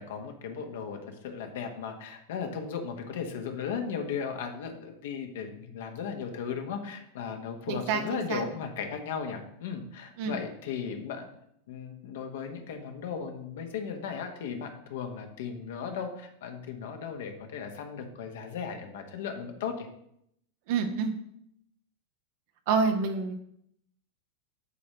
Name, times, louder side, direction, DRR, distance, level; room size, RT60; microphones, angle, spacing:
voice 1, 0.0-11.3 11.7-19.9, left 6 dB, 55° left, 5 dB, 1.2 m, -36 dB
voice 2, 7.7-8.4 10.2-10.3 20.7-21.1 22.7-23.3, right 5 dB, 50° right, 6 dB, 1.1 m, -28 dB
8.3 x 4.2 x 6.4 m, 0.73 s
figure-of-eight pair, 90°, 0 cm